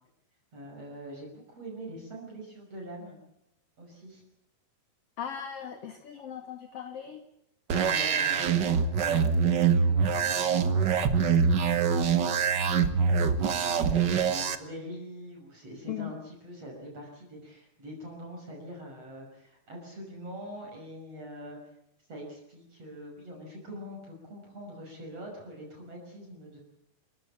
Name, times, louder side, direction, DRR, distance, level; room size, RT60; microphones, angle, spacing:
voice 1, 0.5-3.2 3.8-4.2 7.7-12.4 12.9-21.6 22.1-26.6, equal, 40° right, -1 dB, 7.0 m, -44 dB
voice 2, 5.2-7.2 15.9-16.1, left 9 dB, 50° left, 7 dB, 2.3 m, -38 dB
sound 1, 7.7-14.5, right 6 dB, 80° right, 0.9 m, -24 dB
28.0 x 15.5 x 8.7 m, 0.79 s
omnidirectional pair, 4.2 m